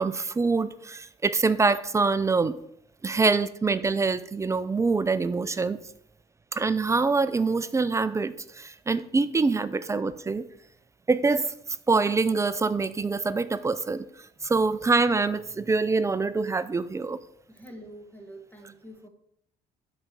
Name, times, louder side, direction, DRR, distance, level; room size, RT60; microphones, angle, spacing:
voice 1, 0.0-2.6 3.0-5.8 6.5-10.5 11.1-11.5 11.9-14.1 14.4-17.2, right 4 dB, 15° right, 14 dB, 0.3 m, -25 dB
voice 2, 17.5-19.1, right 1 dB, 10° left, 4 dB, 1.7 m, -46 dB
6.1 x 4.9 x 6.8 m, 0.74 s
cardioid pair, 110°, 17 cm